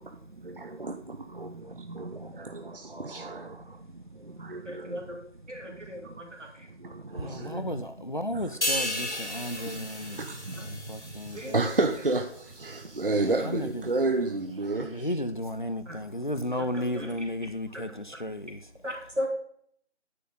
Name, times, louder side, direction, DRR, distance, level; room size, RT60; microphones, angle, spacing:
voice 1, 0.0-5.2 5.6-5.9 6.7-8.1 8.3-9.1 9.6-15.2, right 3 dB, 50° right, 0.6 m, -32 dB
voice 2, 4.7-5.2 5.5-6.3 11.3-11.5 15.9-16.0 16.6-17.1 17.7-17.8 18.8-19.3, equal, 85° right, 2.4 m, -36 dB
voice 3, 7.2-10.2 10.7-11.6 13.4-13.7 14.7-18.6, left 1 dB, 45° left, 0.5 m, -34 dB
sound 1, 8.6-12.1 12.5-12.7, left 1 dB, 70° left, 2.5 m, -34 dB
9.5 x 6.3 x 3.7 m
figure-of-eight pair, 170°, 35 cm